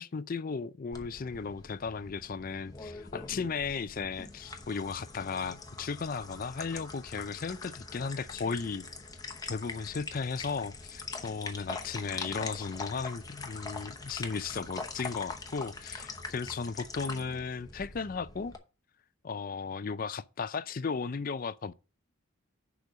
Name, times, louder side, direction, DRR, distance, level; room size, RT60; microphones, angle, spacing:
voice 1, 0.0-8.8 9.5-18.5 19.2-21.7, left 5 dB, 40° left, 0.4 m, -35 dB
sound 1, 0.9-18.6, left 3 dB, 15° left, 0.9 m, -43 dB
6.6 x 5.1 x 6.2 m
head